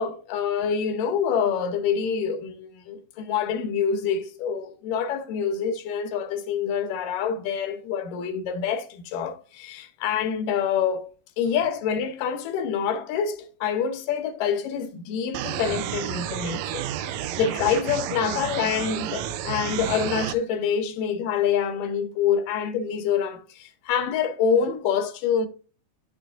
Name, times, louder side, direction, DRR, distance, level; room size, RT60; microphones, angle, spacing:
voice 1, 0.0-11.0 11.4-25.5, left 7 dB, 90° left, 2.6 m, -26 dB
sound 1, 15.3-20.3, right 11 dB, 80° right, 1.6 m, -31 dB
10.5 x 6.2 x 2.6 m
omnidirectional pair, 3.7 m